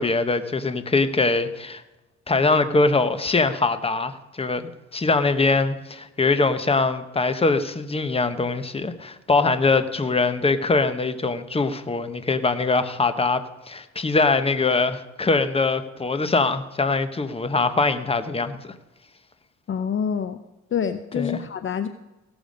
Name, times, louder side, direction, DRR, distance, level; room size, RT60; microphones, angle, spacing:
voice 1, 0.0-1.8 2.3-18.7 21.2-21.4, left 3 dB, 20° left, 11 dB, 1.0 m, -22 dB
voice 2, 19.7-20.4 20.7-21.9, left 7 dB, 40° left, 10 dB, 0.7 m, -26 dB
16.5 x 7.0 x 5.2 m, 1.0 s
cardioid pair, 90°, 30 cm